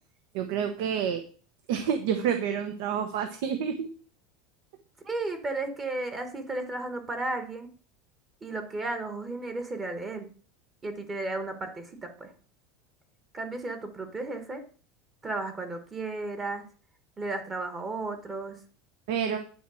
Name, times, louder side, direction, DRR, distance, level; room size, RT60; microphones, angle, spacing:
voice 1, 0.3-1.2 1.7-3.9 19.1-19.4, right 8 dB, 65° right, 7 dB, 1.0 m, -28 dB
voice 2, 5.0-7.7 8.4-10.3 10.8-12.3 13.3-14.6 15.2-16.6 17.2-18.6, right 2 dB, 15° right, 7 dB, 1.1 m, -34 dB
10.0 x 4.6 x 6.3 m, 0.41 s
supercardioid pair, 165°, 0 cm